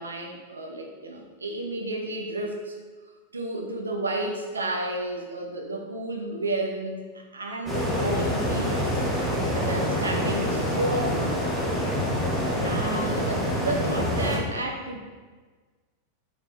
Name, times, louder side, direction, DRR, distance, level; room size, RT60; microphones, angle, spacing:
voice 1, 0.0-2.7 3.3-9.0 9.5-11.4 12.6-15.0, right 2 dB, 75° right, 2 dB, 0.6 m, -32 dB
sound 1, 7.7-14.4, equal, 5° right, 1.0 m, -26 dB
3.9 x 3.5 x 3.0 m, 1.4 s
figure-of-eight pair, 90°, 0 cm